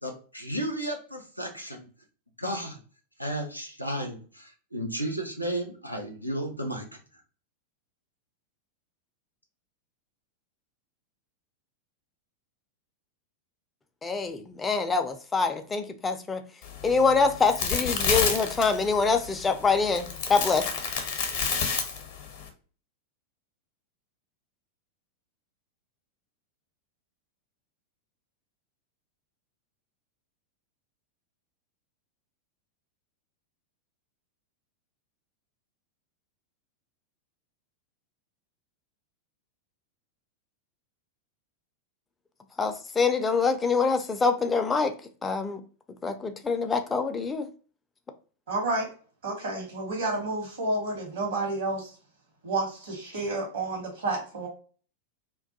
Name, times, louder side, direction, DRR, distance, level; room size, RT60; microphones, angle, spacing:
voice 1, 0.0-1.9 2.4-2.8 3.2-6.9, right 1 dB, 90° right, 0.5 m, -33 dB
voice 2, 14.0-16.4 16.8-20.7 42.6-44.9 45.2-45.6 46.0-47.5, left 4 dB, 15° left, 0.3 m, -25 dB
sound 1, 16.6-22.5, left 6 dB, 55° left, 0.6 m, -30 dB
voice 3, 48.5-48.9 49.2-51.9 52.4-54.5, right 2 dB, 70° right, 0.9 m, -30 dB
2.2 x 2.2 x 2.6 m
figure-of-eight pair, 90°, 0 cm